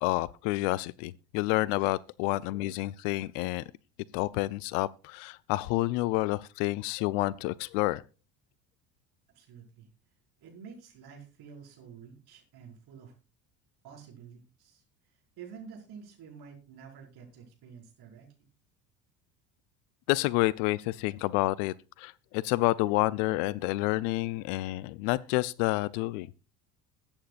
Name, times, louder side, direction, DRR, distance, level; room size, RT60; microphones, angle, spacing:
voice 1, 0.0-3.6 4.1-8.0 20.1-26.3, left 19 dB, 50° left, 0.5 m, -29 dB
voice 2, 9.3-9.9 10.4-13.1 13.8-14.8 15.4-18.3, right 6 dB, 50° right, 5.4 m, -49 dB
21.5 x 8.8 x 2.4 m
figure-of-eight pair, 65°, 49 cm